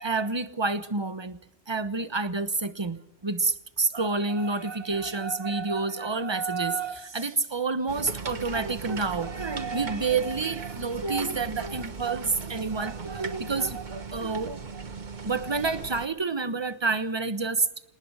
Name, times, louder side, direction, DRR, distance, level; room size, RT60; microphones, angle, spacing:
voice 1, 0.0-1.4 1.7-14.8 15.2-17.7, right 4 dB, 25° right, 1.1 m, -29 dB
sound 1, 7.9-16.1, right 5 dB, 45° right, 1.3 m, -38 dB
27.0 x 19.5 x 5.0 m
omnidirectional pair, 1.2 m